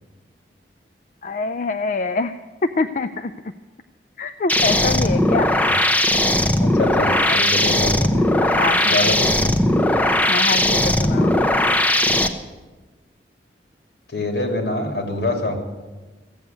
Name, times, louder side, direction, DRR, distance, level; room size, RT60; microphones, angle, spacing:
voice 1, 1.2-2.3 2.6-3.3 4.2-5.5 7.5-7.6 8.3-9.1 10.3-11.4, left 3 dB, 45° left, 9 dB, 0.4 m, -25 dB
sound 1, 4.5-12.3, left 1 dB, 10° left, 0.7 m, -18 dB
voice 2, 6.6-8.2 8.8-9.7 14.1-15.6, left 2 dB, 70° left, 2 dB, 2.8 m, -25 dB
15.0 x 7.9 x 9.2 m, 1.2 s
head